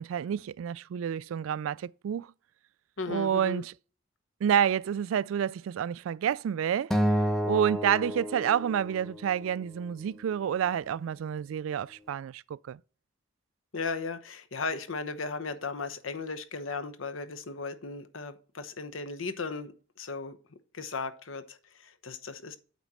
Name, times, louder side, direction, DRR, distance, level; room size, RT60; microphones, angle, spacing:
voice 1, 0.0-2.3 3.1-3.7 4.4-6.9 7.4-12.8, right 8 dB, 90° right, 0.3 m, -29 dB
voice 2, 3.0-3.6 13.7-19.7 20.0-20.4 20.7-22.6, left 4 dB, 80° left, 0.9 m, -36 dB
Acoustic guitar, 6.9-9.3, equal, ahead, 0.8 m, -29 dB
8.3 x 4.2 x 6.1 m
head